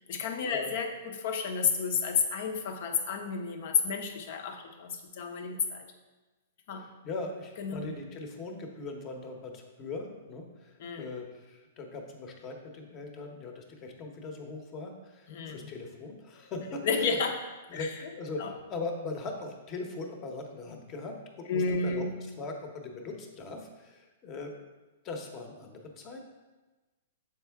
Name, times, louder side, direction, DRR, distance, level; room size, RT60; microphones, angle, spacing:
voice 1, 0.0-5.8 6.7-6.8 7.6-7.9 10.8-11.1 15.3-15.5 16.8-17.4 17.7-17.9 18.4-18.5 21.5-22.1, left 5 dB, 55° left, 5 dB, 0.8 m, -31 dB
voice 2, 6.7-17.2 17.7-24.5 25.0-26.2, left 3 dB, 30° left, 3 dB, 1.0 m, -40 dB
7.0 x 4.5 x 3.5 m, 1.2 s
hypercardioid pair, 140°, 0 cm